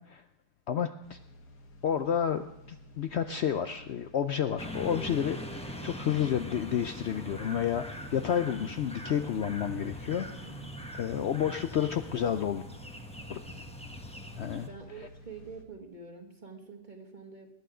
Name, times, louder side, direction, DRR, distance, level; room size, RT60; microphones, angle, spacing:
voice 1, 0.7-1.2 1.8-10.3 10.9-12.6 13.3-13.4 14.4-14.7, left 9 dB, 85° left, 9 dB, 0.5 m, -30 dB
sound 1, 1.0-15.6, equal, 70° left, 2.1 m, -53 dB
sound 2, 4.6-14.7, equal, 5° left, 0.8 m, -42 dB
voice 2, 10.2-10.7 14.7-17.5, right 4 dB, 25° right, 4 dB, 1.7 m, -47 dB
20.5 x 9.3 x 4.9 m, 0.83 s
omnidirectional pair, 1.8 m